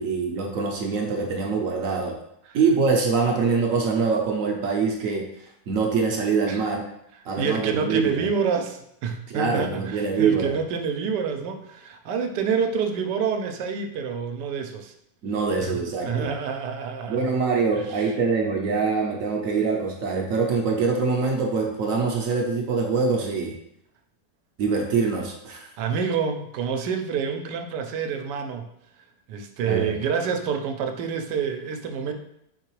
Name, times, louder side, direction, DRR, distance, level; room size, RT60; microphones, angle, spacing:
voice 1, 0.0-2.2 2.5-5.3 5.7-6.9 7.3-8.2 9.3-10.5 15.2-16.3 17.1-23.5 24.6-25.6 29.6-29.9, right 4 dB, 65° right, 2 dB, 0.9 m, -24 dB
voice 2, 7.4-14.9 15.6-17.3 17.7-18.1 25.8-28.7 29.3-32.1, right 6 dB, 90° right, 6 dB, 1.2 m, -28 dB
4.6 x 3.7 x 3.0 m, 0.77 s
omnidirectional pair, 1.8 m